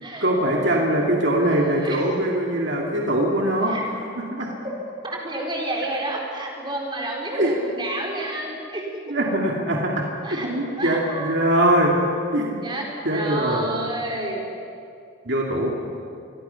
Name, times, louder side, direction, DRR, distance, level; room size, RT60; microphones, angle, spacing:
voice 1, 0.2-4.5 7.3-7.6 9.1-12.0 12.3-12.6 13.0-13.7 15.2-15.7, right 1 dB, 60° right, -2 dB, 2.6 m, -22 dB
voice 2, 1.8-2.1 3.7-3.8 5.0-8.9 10.2-10.5 10.8-11.5 12.6-14.5, right 1 dB, 25° right, -1 dB, 4.1 m, -30 dB
28.0 x 23.0 x 5.9 m, 2.5 s
head